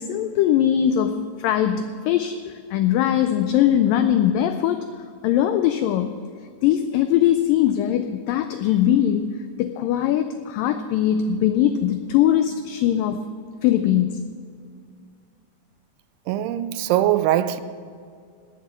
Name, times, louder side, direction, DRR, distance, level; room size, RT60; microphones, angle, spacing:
voice 1, 0.0-4.9 5.2-6.2 6.6-13.3 13.6-14.3, left 10 dB, 90° left, 1.9 m, -21 dB
voice 2, 16.3-17.6, right 12 dB, 90° right, 2.6 m, -21 dB
18.5 x 7.5 x 6.7 m
omnidirectional pair, 4.5 m